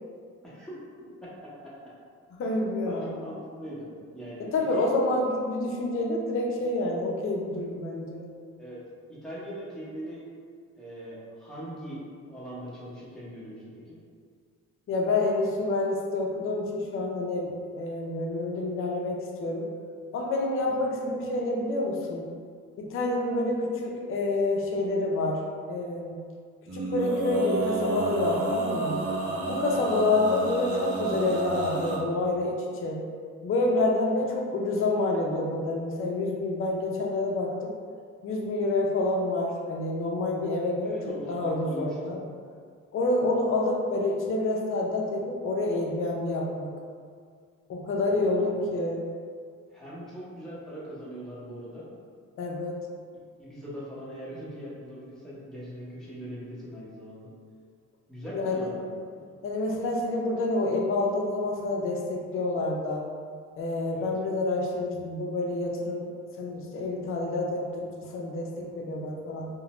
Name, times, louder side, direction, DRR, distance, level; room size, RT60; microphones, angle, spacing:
voice 1, 0.4-0.7 1.2-1.3 1.6-1.7 2.8-3.9 4.1-4.9 8.6-8.8 9.1-10.2 10.7-12.0 12.3-14.0 29.7-29.8 40.8-42.0 48.0-48.6 49.7-51.9 53.4-57.3 58.1-58.8 59.1-59.3 63.9-64.1, equal, ahead, -9 dB, 0.9 m, -40 dB
voice 2, 2.4-3.1 4.5-8.2 14.9-19.7 20.1-22.2 22.8-25.4 25.7-26.2 26.7-29.0 29.5-33.0 33.4-37.7 38.2-41.0 41.3-42.2 42.9-46.7 47.7-49.0 52.4-52.8 58.3-58.7 59.4-63.1 63.6-66.1 66.4-69.5, left 2 dB, 45° left, 0 dB, 0.5 m, -28 dB
Male singing, 26.7-32.0, right 2 dB, 55° right, 0.8 m, -30 dB
2.6 x 2.1 x 2.9 m, 2.1 s
cardioid pair, 90°, 30 cm